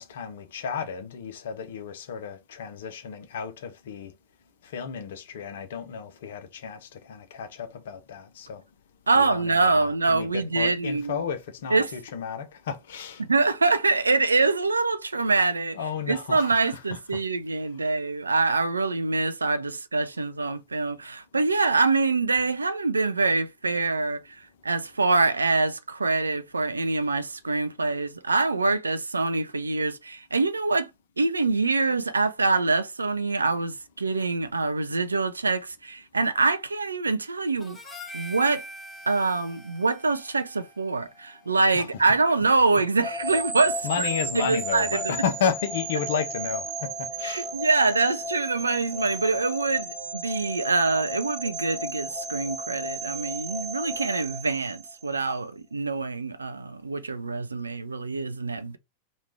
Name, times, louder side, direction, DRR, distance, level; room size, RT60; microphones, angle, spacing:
voice 1, 0.0-4.1 4.6-8.6 9.1-13.3 15.7-17.2 41.7-41.9 43.8-47.5, left 7 dB, 60° left, 0.6 m, -32 dB
voice 2, 9.1-11.2 11.7-11.9 13.3-15.8 16.1-30.9 31.2-38.6 39.1-44.1 44.4-45.0 47.2-58.8, right 3 dB, 80° right, 0.4 m, -25 dB
Harmonica, 37.6-42.1, equal, 15° left, 0.7 m, -44 dB
sound 1, 43.0-55.2, right 1 dB, 30° right, 1.0 m, -34 dB
3.0 x 2.3 x 3.3 m
figure-of-eight pair, 90°, 0 cm